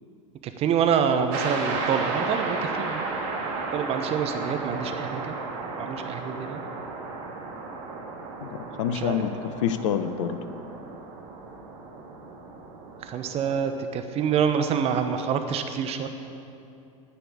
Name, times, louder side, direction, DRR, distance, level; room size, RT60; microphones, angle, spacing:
voice 1, 0.4-3.1 3.7-5.4 5.8-6.6 8.9-9.4 13.0-16.1, right 7 dB, 35° right, 7 dB, 1.0 m, -26 dB
sound 1, 1.3-13.8, right 3 dB, 55° right, 2.0 m, -34 dB
voice 2, 8.8-9.3 9.6-10.4, left 9 dB, 65° left, 10 dB, 0.8 m, -26 dB
9.8 x 9.5 x 8.5 m, 2.6 s
figure-of-eight pair, 80°, 17 cm